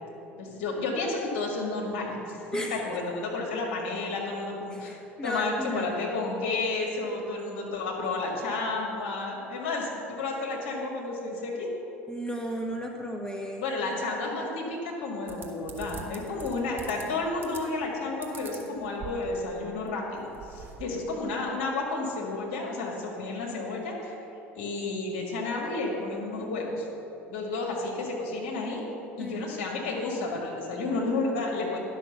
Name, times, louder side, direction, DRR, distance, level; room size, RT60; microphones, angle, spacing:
voice 1, 0.4-5.0 5.2-11.7 13.6-24.2 24.6-26.9 27.3-28.9 29.2-31.8, left 3 dB, 65° left, -1 dB, 2.0 m, -31 dB
voice 2, 2.5-2.8 4.7-5.9 12.1-13.9 21.3-21.4 29.2-29.6, equal, 10° left, 1 dB, 1.1 m, -35 dB
sound 1, 15.3-17.0 17.4-17.9 18.2-19.5 19.9-20.0 20.2-20.8, right 6 dB, 30° right, 1.4 m, -43 dB
11.0 x 6.1 x 6.6 m, 2.9 s
figure-of-eight pair, 70°, 7 cm